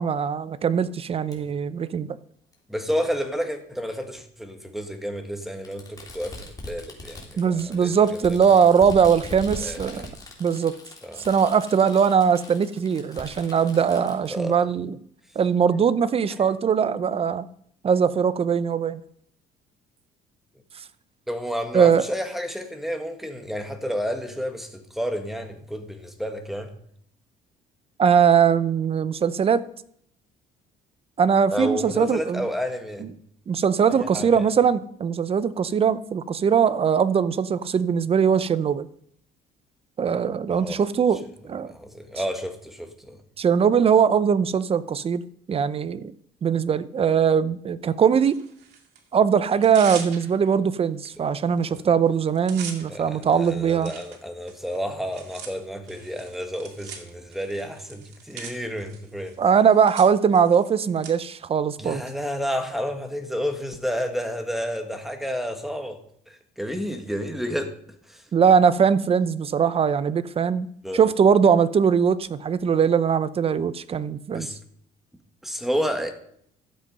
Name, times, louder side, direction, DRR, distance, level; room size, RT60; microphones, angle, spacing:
voice 1, 0.0-2.2 7.4-10.1 10.4-10.8 11.3-14.9 15.4-17.5 17.8-19.0 21.7-22.0 28.0-29.7 31.2-32.4 33.5-38.9 40.0-41.7 43.4-45.2 45.5-46.1 46.4-48.4 49.1-53.9 59.4-62.0 68.3-70.7 70.9-74.5, right 7 dB, 35° right, 0.6 m, -21 dB
Fireworks, 1.3-1.4 2.5-2.6 3.9-4.0 5.6-14.4, left 2 dB, 20° left, 3.3 m, -41 dB
voice 2, 2.7-8.4 9.6-9.8 11.0-11.2 14.3-14.6 21.3-26.7 31.5-33.1 33.9-34.5 40.5-40.8 41.6-43.2 51.7-51.8 52.9-59.4 61.8-66.0 66.3-67.7 68.1-68.2 70.8-71.1 74.3-74.5 75.4-76.1, equal, ahead, 1.6 m, -30 dB
Tearing, 48.2-49.0 49.5-50.5 51.1-51.2 51.5-51.8 52.1-61.1, right 7 dB, 80° right, 2.3 m, -42 dB
12.5 x 7.7 x 5.4 m
cardioid pair, 110°, 17 cm